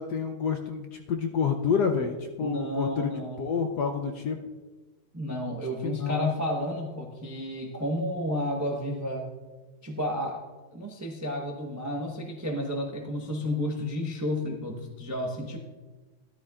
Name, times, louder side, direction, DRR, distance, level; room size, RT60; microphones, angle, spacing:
voice 1, 0.0-4.4 5.8-6.3, left 6 dB, 70° left, 4 dB, 1.0 m, -28 dB
voice 2, 2.4-3.4 5.1-9.3 9.8-10.4 10.7-15.6, equal, 25° right, 1 dB, 0.4 m, -31 dB
13.0 x 13.0 x 2.4 m, 1.3 s
omnidirectional pair, 2.4 m